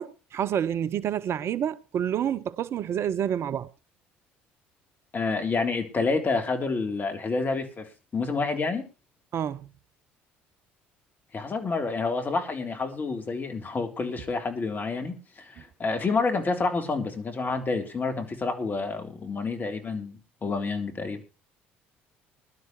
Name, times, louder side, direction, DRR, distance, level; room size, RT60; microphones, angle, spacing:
voice 1, 0.0-3.7 9.3-9.7, right 9 dB, 50° right, 0.7 m, -28 dB
voice 2, 5.1-7.9 8.1-8.9 11.3-21.2, left 4 dB, 35° left, 3.4 m, -28 dB
21.0 x 12.0 x 3.2 m
hypercardioid pair, 60°, 6 cm